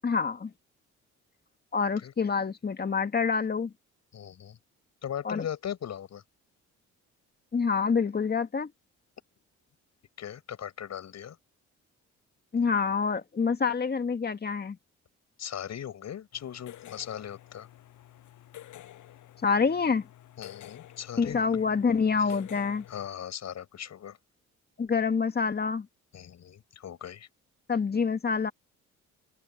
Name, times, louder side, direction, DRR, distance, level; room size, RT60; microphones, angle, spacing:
voice 1, 0.0-0.5 1.7-3.7 5.2-5.4 7.5-8.7 12.5-14.8 19.4-20.1 21.2-22.9 24.8-25.9 27.7-28.5, left 5 dB, 30° left, 2.0 m, -27 dB
voice 2, 4.1-4.6 5.0-6.2 10.2-11.4 15.4-17.7 20.4-21.6 22.2-22.3 22.9-24.2 26.1-27.3, left 9 dB, 60° left, 7.4 m, -39 dB
sound 1, 16.3-23.1, left 12 dB, 80° left, 7.6 m, -50 dB
cardioid pair, 90°, 30 cm